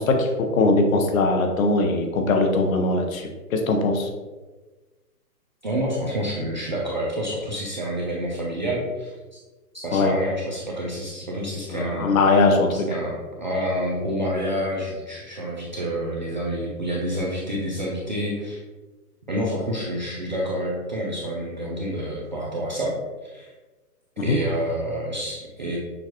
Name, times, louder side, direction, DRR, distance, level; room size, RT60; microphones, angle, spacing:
voice 1, 0.0-4.1 9.9-10.1 11.7-12.7 24.2-24.4, left 3 dB, 60° left, 3 dB, 0.8 m, -21 dB
voice 2, 5.6-9.4 9.7-12.2 12.9-18.6 19.3-23.5 24.2-25.8, equal, 30° right, -4 dB, 0.4 m, -28 dB
6.3 x 2.3 x 2.9 m, 1.2 s
hypercardioid pair, 145°, 47 cm